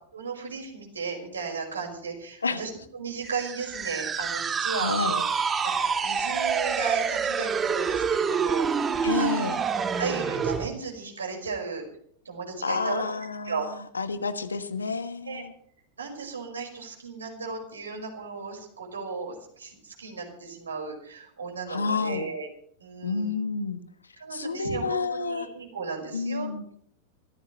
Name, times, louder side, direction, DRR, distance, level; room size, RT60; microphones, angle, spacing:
voice 1, 0.1-5.2 5.6-9.3 10.0-11.8 12.3-13.0 13.4-13.7 15.3-15.4 16.0-22.5 22.8-23.4 24.2-26.5, right 5 dB, 75° right, 2 dB, 5.2 m, -35 dB
sound 1, 3.2-10.7, right 6 dB, 20° right, 1.5 m, -27 dB
voice 2, 4.8-5.2 9.0-9.6 12.6-15.5 21.7-22.3 23.0-23.8 24.3-25.5 26.1-26.6, left 4 dB, 75° left, 11 dB, 1.3 m, -29 dB
24.0 x 15.5 x 3.2 m, 0.63 s
figure-of-eight pair, 90°, 0 cm